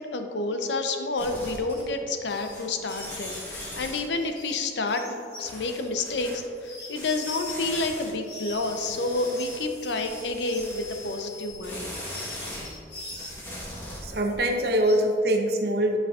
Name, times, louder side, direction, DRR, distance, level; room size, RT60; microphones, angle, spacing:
voice 1, 0.0-11.9, left 2 dB, 85° left, 6 dB, 0.6 m, -29 dB
sound 1, 1.2-2.0 2.3-4.2 5.4-6.4 7.0-8.1 8.5-12.7 13.1-14.4, left 1 dB, 15° left, 1.2 m, -40 dB
sound 2, 2.2-2.6 2.8-7.8 8.2-13.5 13.9-15.1, left 2 dB, 65° left, 1.4 m, -44 dB
voice 2, 14.0-16.0, right 1 dB, 60° right, 3 dB, 0.7 m, -23 dB
10.5 x 5.7 x 2.4 m, 2.5 s
head